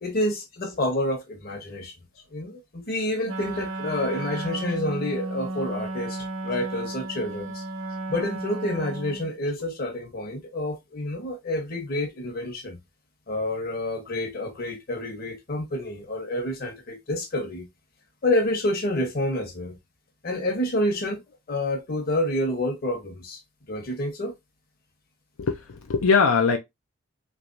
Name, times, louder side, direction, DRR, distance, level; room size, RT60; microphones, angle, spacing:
voice 1, 0.0-1.9 2.3-7.6 8.1-12.8 13.3-17.7 18.2-19.8 20.2-21.2 21.5-23.4 23.7-24.3, left 1 dB, 45° left, 1.0 m, -28 dB
Wind instrument woodwind instrument, 3.2-9.4, right 2 dB, 65° right, 0.6 m, -33 dB
voice 2, 4.1-4.7 9.4-9.5 25.4-26.6, left 5 dB, 75° left, 0.5 m, -24 dB
3.3 x 3.0 x 2.6 m
head